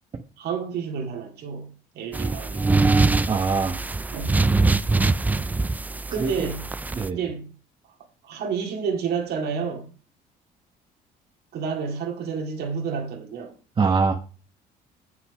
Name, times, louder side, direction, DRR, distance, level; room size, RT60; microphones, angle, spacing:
voice 1, 0.4-3.0 4.1-4.4 6.1-6.6 7.1-7.5 8.2-9.9 11.5-13.5, right 6 dB, 70° right, 2.2 m, -30 dB
sound 1, 2.1-7.1, right 3 dB, 10° right, 0.3 m, -23 dB
voice 2, 3.3-3.8 6.2-6.3 6.9-7.2 13.8-14.1, right 4 dB, 30° right, 1.1 m, -22 dB
7.8 x 6.0 x 5.1 m
cardioid pair, 110°, 17 cm